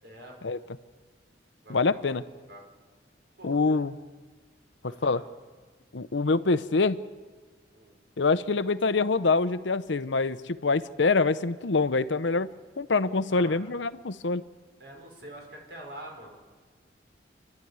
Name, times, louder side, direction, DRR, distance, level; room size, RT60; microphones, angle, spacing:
voice 1, 0.0-0.6 1.6-1.8 2.5-2.6 3.4-3.8 4.8-5.2 7.7-7.9 13.0-13.8 14.8-16.4, right 1 dB, 65° right, 1 dB, 5.0 m, -45 dB
voice 2, 1.7-2.2 3.4-3.9 5.0-5.2 5.9-7.0 8.2-12.5 12.8-14.4, left 3 dB, 85° left, 14 dB, 0.8 m, -25 dB
28.0 x 12.0 x 9.6 m, 1.4 s
head